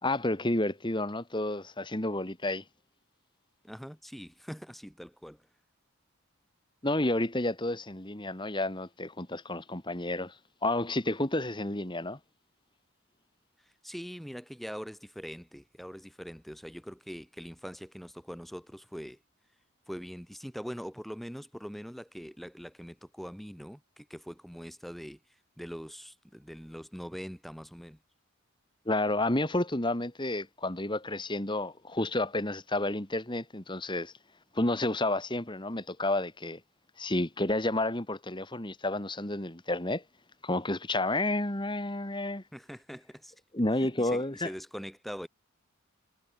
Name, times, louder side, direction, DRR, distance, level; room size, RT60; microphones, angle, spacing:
voice 1, 0.0-2.6 6.8-10.3 10.6-12.2 28.9-34.1 34.5-36.6 37.0-40.0 40.4-42.4 43.5-44.5, left 2 dB, 20° left, 2.0 m, -30 dB
voice 2, 3.6-5.4 13.6-19.2 19.9-25.2 25.6-28.0 42.5-43.3 43.8-45.3, equal, ahead, 6.8 m, -43 dB
head